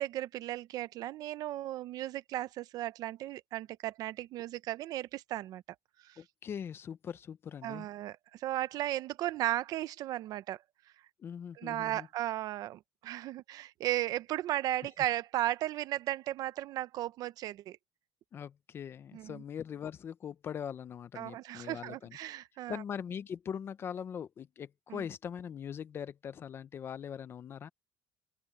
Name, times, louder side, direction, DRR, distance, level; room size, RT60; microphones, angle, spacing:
voice 1, 0.0-5.6 6.0-6.2 7.6-10.6 11.6-17.8 19.1-19.4 21.2-22.8 24.9-25.0, right 14 dB, 45° right, 0.6 m, -35 dB
voice 2, 6.2-7.9 11.2-12.1 18.3-22.2 22.7-27.7, left 8 dB, 25° left, 0.6 m, -41 dB
open air
cardioid pair, 165°, 9 cm